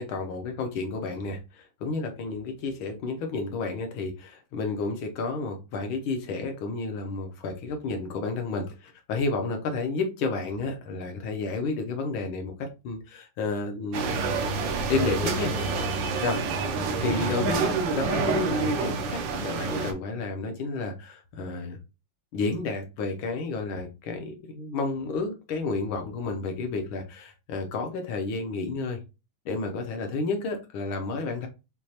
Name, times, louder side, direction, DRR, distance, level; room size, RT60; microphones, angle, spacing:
voice 1, 0.0-14.2 14.9-16.4 17.0-21.8 22.3-29.0 29.4-31.5, left 3 dB, 70° left, 4 dB, 1.6 m, -31 dB
sound 1, 13.9-19.9, right 4 dB, 70° right, 1.3 m, -27 dB
6.4 x 2.4 x 2.8 m, 0.29 s
omnidirectional pair, 2.4 m